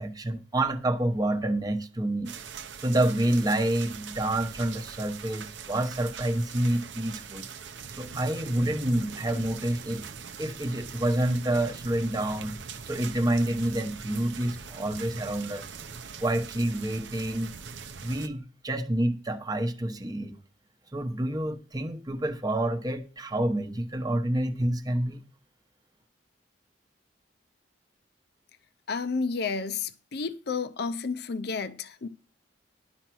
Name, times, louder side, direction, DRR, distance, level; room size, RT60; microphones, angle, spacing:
voice 1, 0.0-2.3 2.8-7.5 8.0-10.0 10.4-12.6 12.8-15.7 16.2-17.5 18.0-20.4 20.9-25.2, right 1 dB, 20° right, 0.9 m, -28 dB
sound 1, 2.2-18.3, right 6 dB, 75° right, 0.8 m, -42 dB
voice 2, 28.9-32.1, left 4 dB, 60° left, 0.6 m, -31 dB
11.5 x 5.7 x 6.1 m
head